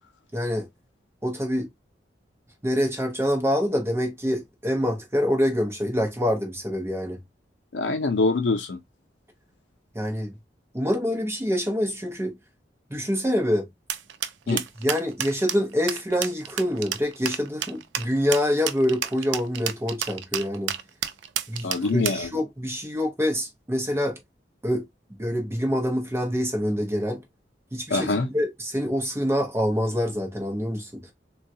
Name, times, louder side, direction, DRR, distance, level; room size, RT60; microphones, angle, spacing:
voice 1, 0.3-0.7 1.2-1.7 2.6-7.2 9.9-10.3 10.7-12.4 12.9-13.7 14.5-20.7 21.5-24.2 24.6-24.8 25.2-27.2 27.7-31.1, equal, 15° right, 0.7 m, -26 dB
voice 2, 7.7-8.8 14.5-14.6 21.6-22.3 27.9-28.3, left 3 dB, 75° left, 0.5 m, -24 dB
sound 1, 13.9-22.3, right 10 dB, 85° right, 0.4 m, -30 dB
3.7 x 2.3 x 2.6 m
head